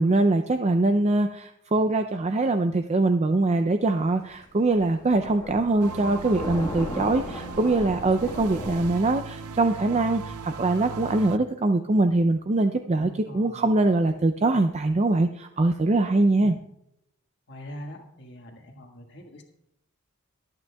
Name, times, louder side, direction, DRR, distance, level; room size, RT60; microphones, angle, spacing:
voice 1, 0.0-16.5, right 2 dB, 30° right, 8 dB, 0.4 m, -23 dB
Thunder, 3.9-8.9, left 1 dB, 15° left, 1.5 m, -37 dB
sound 1, 5.8-11.4, right 4 dB, 85° right, 0.6 m, -38 dB
voice 2, 13.0-13.7 16.4-16.5 17.5-19.4, equal, 50° left, 1 dB, 1.6 m, -42 dB
23.0 x 8.8 x 2.3 m, 0.80 s
head